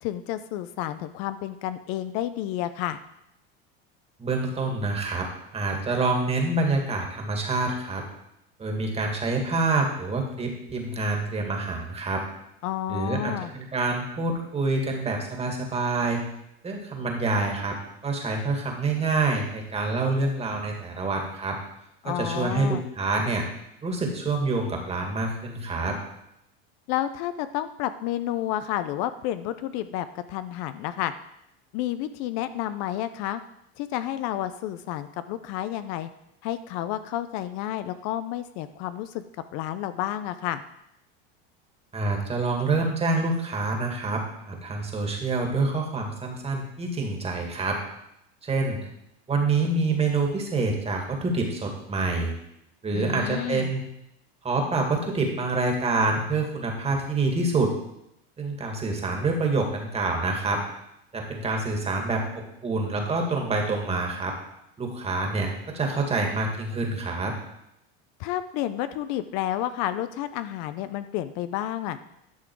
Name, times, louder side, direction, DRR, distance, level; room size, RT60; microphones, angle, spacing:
voice 1, 0.0-3.0 12.6-13.5 22.0-22.8 26.9-31.1 31.7-33.4 33.8-36.1 36.4-39.2 39.5-40.6 52.9-53.7 68.2-72.0, left 12 dB, 60° left, 12 dB, 0.6 m, -30 dB
voice 2, 4.2-5.3 5.5-8.0 8.6-12.2 12.9-16.2 16.6-17.8 18.0-21.6 22.0-23.4 23.8-26.0 41.9-47.8 48.4-48.8 49.3-52.3 52.8-53.8 54.4-57.7 58.4-60.6 61.1-64.3 64.8-67.3, right 3 dB, 20° right, 1 dB, 2.1 m, -27 dB
11.5 x 6.0 x 4.7 m, 0.82 s
supercardioid pair, 120°, 30 cm